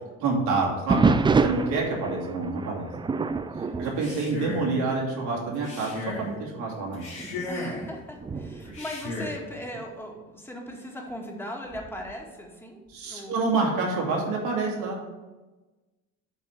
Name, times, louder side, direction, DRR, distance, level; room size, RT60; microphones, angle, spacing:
voice 1, 0.2-1.0 1.4-2.9 3.8-7.0 12.9-15.0, right 3 dB, 65° right, -2 dB, 2.6 m, -27 dB
sound 1, 0.9-5.0 5.4-5.7 6.3-6.4 7.2-9.9 11.7-12.2, right 4 dB, 15° right, 0.3 m, -28 dB
voice 2, 3.6-4.1 7.4-13.4, left 1 dB, 5° left, 0 dB, 1.9 m, -39 dB
Male speech man speaking, 3.8-4.8 5.5-6.3 6.9-7.9 8.6-9.4, left 2 dB, 90° left, 2.7 m, -35 dB
8.1 x 4.3 x 6.3 m, 1.2 s
hypercardioid pair, 65°, 40 cm